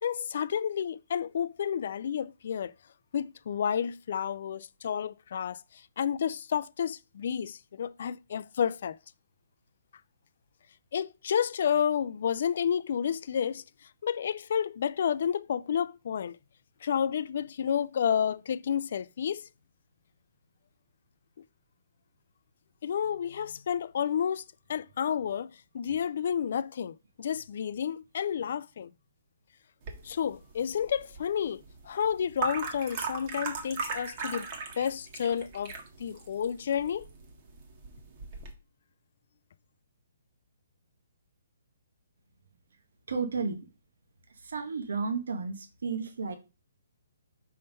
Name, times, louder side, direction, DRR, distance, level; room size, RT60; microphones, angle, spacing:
voice 1, 0.0-2.7 3.1-9.0 10.9-13.6 14.0-16.4 16.8-19.5 22.8-24.4 24.7-28.9 30.0-34.5 34.8-35.7 36.0-37.1, left 8 dB, 60° left, 0.3 m, -30 dB
sound 1, 29.8-38.5, right 4 dB, 40° right, 1.5 m, -39 dB
voice 2, 43.1-43.6 44.4-46.4, right 5 dB, 75° right, 1.2 m, -32 dB
5.4 x 3.5 x 5.4 m
hypercardioid pair, 150°, 0 cm